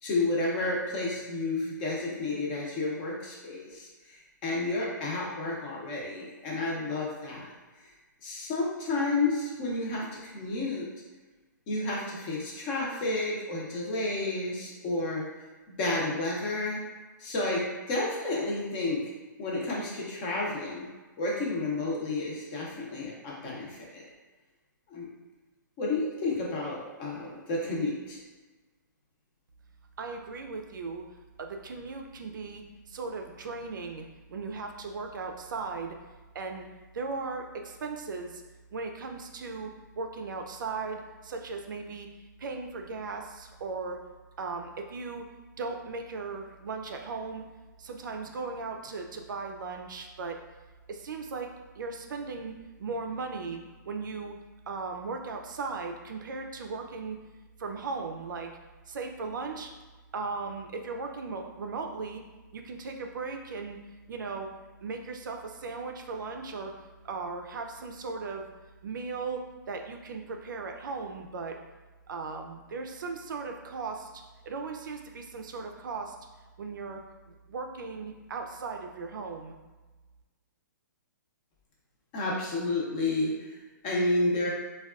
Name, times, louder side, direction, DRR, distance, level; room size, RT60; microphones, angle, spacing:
voice 1, 0.0-7.5 8.2-10.9 11.7-15.2 15.7-16.8 17.2-19.0 19.4-20.9 21.2-24.0 24.9-25.1 25.8-28.2 82.1-83.6 83.8-84.5, left 2 dB, 30° left, -4 dB, 0.7 m, -31 dB
voice 2, 30.0-31.1 31.4-36.0 36.3-36.7 36.9-38.4 38.7-42.1 42.4-44.0 44.4-45.3 45.6-47.4 47.8-50.4 50.9-51.5 51.8-52.5 52.8-54.4 54.7-57.2 57.6-58.5 58.9-59.7 60.1-62.2 62.5-63.8 64.1-64.5 64.8-66.7 67.0-68.5 68.8-69.4 69.7-71.6 72.1-76.2 76.6-77.0 77.5-79.5, right 4 dB, 75° right, 3 dB, 0.4 m, -37 dB
3.4 x 2.3 x 2.3 m, 1.3 s
hypercardioid pair, 155°, 11 cm